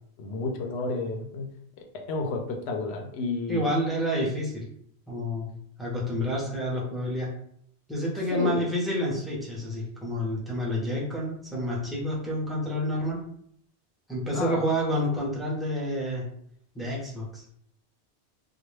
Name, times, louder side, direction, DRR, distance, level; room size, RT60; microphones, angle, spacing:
voice 1, 0.2-1.5 1.8-3.6 8.3-8.7 14.3-14.7, left 3 dB, 75° left, 2 dB, 0.8 m, -31 dB
voice 2, 3.5-4.7 5.1-5.5 5.8-7.3 7.9-13.2 14.1-16.2 16.7-17.4, equal, ahead, -5 dB, 0.4 m, -29 dB
2.3 x 2.1 x 3.1 m, 0.69 s
omnidirectional pair, 1.1 m